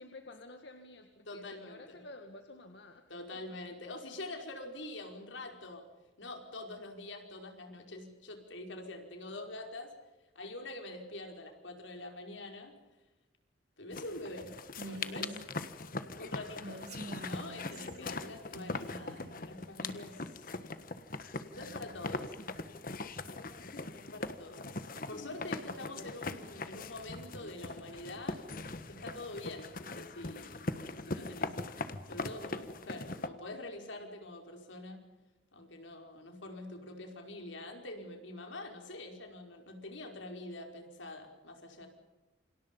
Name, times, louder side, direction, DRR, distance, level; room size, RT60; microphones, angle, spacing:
voice 1, 0.0-3.1 3.3-3.8 21.5-22.2 23.6-24.0 25.7-26.1, left 2 dB, 65° left, 5 dB, 1.9 m, -52 dB
voice 2, 1.3-2.0 3.1-5.8 6.2-9.9 10.4-12.8 13.8-14.5 14.8-15.4 16.2-16.8 17.2-20.6 21.5-22.3 24.0-28.4 28.9-30.7 31.1-35.0 35.5-41.9, left 2 dB, 85° left, 3 dB, 5.1 m, -45 dB
sound 1, 13.9-33.3, left 3 dB, 45° left, 1.4 m, -41 dB
Female speech woman speaking, 14.7-15.4 16.5-18.0 18.5-19.4, right 2 dB, 60° right, 2.9 m, -46 dB
28.5 x 26.5 x 5.5 m, 1.1 s
head